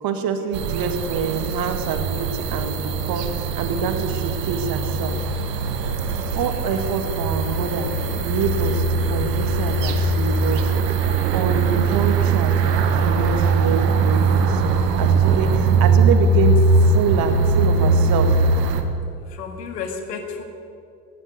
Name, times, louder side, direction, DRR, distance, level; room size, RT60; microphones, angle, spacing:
voice 1, 0.0-5.3 6.4-7.9 8.2-11.0 11.3-12.5 12.8-18.4, right 5 dB, 45° right, 7 dB, 2.0 m, -26 dB
sound 1, 0.5-18.8, right 4 dB, 80° right, 1.4 m, -20 dB
voice 2, 19.3-20.4, left 5 dB, 80° left, 5 dB, 2.2 m, -32 dB
15.0 x 11.0 x 8.1 m, 2.6 s
hypercardioid pair, 80°, 48 cm